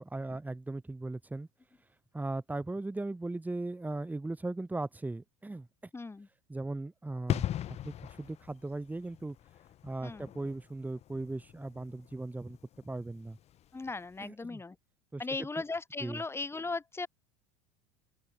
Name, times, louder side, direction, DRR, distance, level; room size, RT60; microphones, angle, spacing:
voice 1, 0.0-1.5 2.1-5.9 6.5-9.4 9.8-12.6 12.8-13.4 14.2-14.6 15.1-15.5 16.0-16.2, right 2 dB, 10° right, 3.5 m, -38 dB
voice 2, 5.9-6.3 10.0-10.3 13.7-14.8 15.2-17.1, left 3 dB, 15° left, 6.4 m, -37 dB
sound 1, 7.3-13.8 14.0-14.2, left 12 dB, 45° left, 1.9 m, -40 dB
open air
hypercardioid pair, 85°, 16 cm